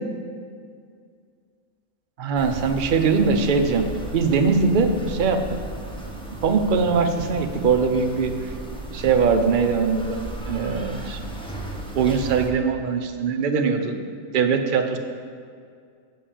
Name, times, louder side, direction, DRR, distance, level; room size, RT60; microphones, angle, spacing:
voice 1, 2.2-3.9 4.1-5.4 6.4-8.5 8.9-10.2 10.5-11.2 11.9-14.0 14.3-15.0, right 5 dB, 50° right, 5 dB, 0.6 m, -21 dB
sound 1, 2.4-12.5, right 1 dB, 5° left, 0.7 m, -35 dB
6.9 x 5.5 x 7.4 m, 2.2 s
omnidirectional pair, 1.4 m